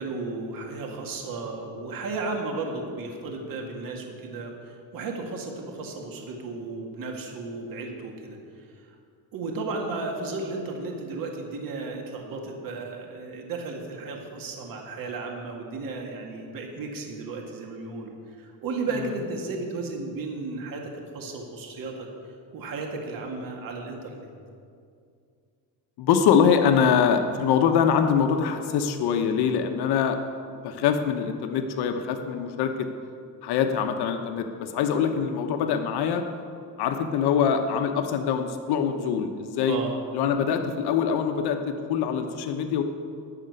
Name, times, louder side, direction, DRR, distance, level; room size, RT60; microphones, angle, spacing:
voice 1, 0.0-8.4 9.3-22.1 22.5-24.3 39.5-40.0, right 3 dB, 55° right, 1 dB, 2.1 m, -34 dB
voice 2, 26.0-30.2 30.6-32.9 33.4-36.2 36.8-39.8 40.1-42.8, left 7 dB, 75° left, 6 dB, 1.1 m, -24 dB
12.0 x 6.7 x 9.5 m, 2.3 s
cardioid pair, 145°, 40 cm